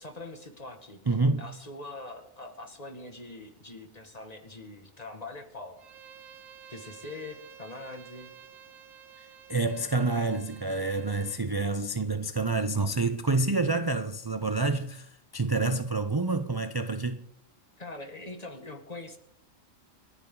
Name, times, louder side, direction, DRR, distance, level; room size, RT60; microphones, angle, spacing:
voice 1, 0.0-1.0 1.4-5.8 6.7-8.3 17.8-19.2, left 2 dB, 30° left, 1.9 m, -43 dB
voice 2, 1.1-1.4 9.5-17.2, right 3 dB, 35° right, 0.4 m, -28 dB
Bowed string instrument, 5.8-11.4, right 8 dB, 80° right, 1.2 m, -51 dB
29.0 x 9.7 x 3.8 m
omnidirectional pair, 1.4 m